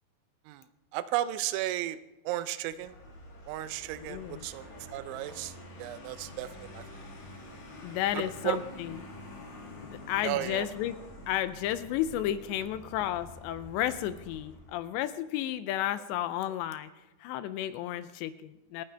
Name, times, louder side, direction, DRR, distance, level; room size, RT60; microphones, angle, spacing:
voice 1, 0.9-2.0 2.3-2.9 3.5-6.8 8.4-8.6 10.2-10.7, right 14 dB, 85° right, 14 dB, 3.0 m, -34 dB
Vehicle, 2.6-14.9, left 1 dB, 60° left, 4.4 m, -47 dB
voice 2, 4.0-4.4 7.8-9.0 9.8-11.0 11.3-16.9 17.2-18.8, left 12 dB, 80° left, 12 dB, 2.7 m, -32 dB
27.5 x 9.4 x 3.3 m, 1.0 s
omnidirectional pair, 5.3 m